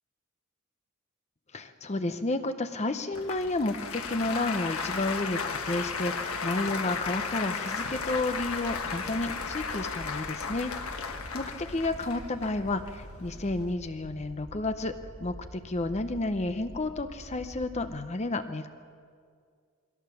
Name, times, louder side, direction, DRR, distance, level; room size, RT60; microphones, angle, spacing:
voice 1, 1.5-6.2 6.4-10.7 11.0-14.9 15.2-18.7, left 2 dB, 30° left, 9 dB, 0.7 m, -31 dB
Applause, 3.1-13.7, left 5 dB, 85° left, 1.3 m, -35 dB
sound 1, 7.8-17.8, equal, 5° right, 7.4 m, -47 dB
23.0 x 16.5 x 7.0 m, 2.1 s
head